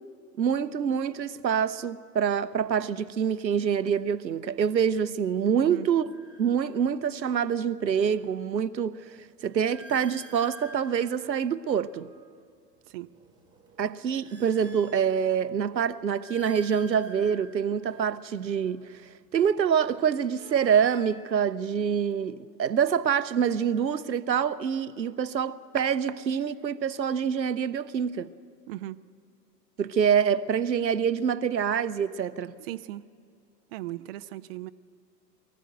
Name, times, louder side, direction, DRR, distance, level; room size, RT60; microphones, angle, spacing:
voice 1, 0.4-9.0 9.4-12.1 13.8-19.0 19.3-28.3 29.8-32.5, right 7 dB, 80° right, 0.8 m, -26 dB
sound 1, 4.0-4.2 5.9-7.1 7.5-12.4 12.9-15.6 16.0-19.0 20.0-22.2, right 1 dB, 10° right, 2.2 m, -52 dB
voice 2, 28.7-29.0 32.7-33.0 33.7-34.7, right 15 dB, 40° right, 0.5 m, -37 dB
23.0 x 14.5 x 7.7 m
figure-of-eight pair, 95°, 50 cm